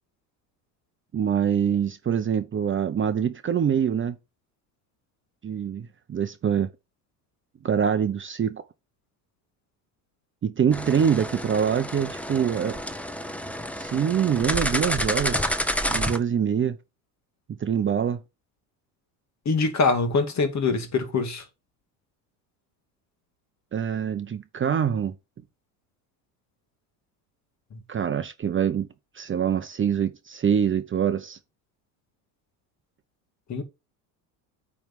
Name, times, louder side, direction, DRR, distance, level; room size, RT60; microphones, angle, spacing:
voice 1, 1.1-4.2 5.4-6.7 7.6-8.6 10.4-12.8 13.8-15.6 15.9-16.8 17.6-18.2 23.7-25.1 27.9-28.9 29.1-31.4, right 8 dB, 25° right, 0.8 m, -25 dB
sound 1, 10.7-16.2, equal, 5° left, 1.0 m, -29 dB
voice 2, 19.5-21.4 27.7-27.8 33.5-33.6, left 4 dB, 35° left, 2.3 m, -24 dB
9.0 x 3.6 x 5.5 m
hypercardioid pair, 85°, 46 cm